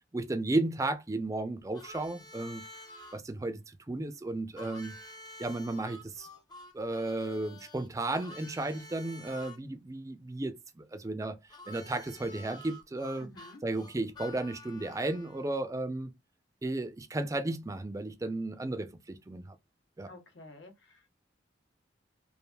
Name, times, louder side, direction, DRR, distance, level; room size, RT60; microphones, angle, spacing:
voice 1, 0.1-2.6 3.1-4.9 5.4-6.3 6.7-11.4 11.7-13.3 13.6-16.1 16.6-19.6 20.0-20.1, right 2 dB, 20° right, 0.4 m, -34 dB
Harmonica, 1.7-3.2 4.6-9.6 11.5-15.4, left 1 dB, 25° left, 0.6 m, -49 dB
voice 2, 13.2-13.6 20.1-21.2, left 2 dB, 85° left, 0.9 m, -51 dB
3.2 x 2.4 x 2.2 m
head